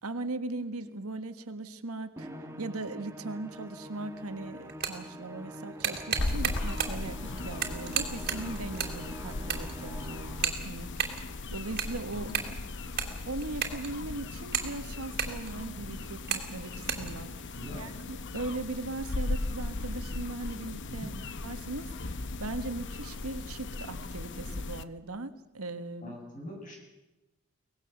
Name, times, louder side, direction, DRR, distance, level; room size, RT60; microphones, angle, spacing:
voice 1, 0.0-2.3 2.6-11.2 11.5-12.3 13.3-21.1 21.4-26.1, right 2 dB, 85° right, 9 dB, 1.5 m, -39 dB
Musical instrument, 2.2-10.6, equal, 15° right, 1.5 m, -45 dB
sound 1, 3.8-3.9 4.6-5.1 5.5-7.1 7.4-9.0 9.2-9.9 10.4-11.2 11.6-14.0 14.4-15.8 16.2-16.5 16.7-17.1, right 8 dB, 45° right, 2.8 m, -33 dB
sound 2, 6.2-24.8, left 2 dB, 55° left, 0.9 m, -37 dB
voice 2, 12.1-12.6 17.5-17.8 20.8-21.1 26.0-26.8, equal, 40° left, 0 dB, 7.7 m, -43 dB
23.5 x 18.5 x 7.1 m, 1.0 s
head